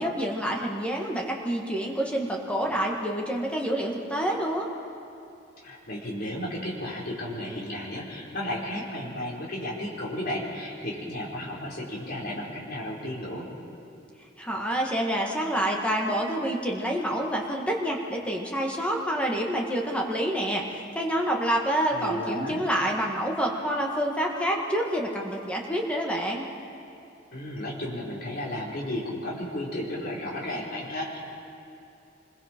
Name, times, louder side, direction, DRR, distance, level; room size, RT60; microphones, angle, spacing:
voice 1, 0.0-4.7 14.4-26.5, right 1 dB, 5° left, -1 dB, 1.7 m, -27 dB
voice 2, 5.6-13.5 21.9-22.6 27.3-31.2, left 1 dB, 50° left, -4 dB, 4.3 m, -33 dB
26.5 x 21.5 x 4.5 m, 2.7 s
head